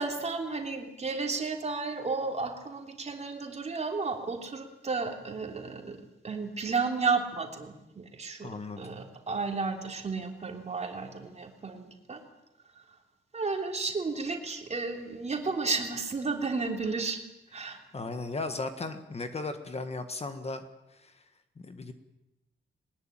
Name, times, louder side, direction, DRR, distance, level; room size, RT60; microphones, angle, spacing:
voice 1, 0.0-6.0 6.2-8.5 8.8-12.2 13.3-17.2 17.5-17.8, right 4 dB, 35° right, 4 dB, 3.2 m, -32 dB
voice 2, 8.4-9.0 17.9-20.6 20.9-21.2 21.6-21.9, left 3 dB, 30° left, 8 dB, 1.6 m, -36 dB
21.5 x 20.0 x 9.0 m, 0.92 s
wide cardioid pair, 160°, 20 cm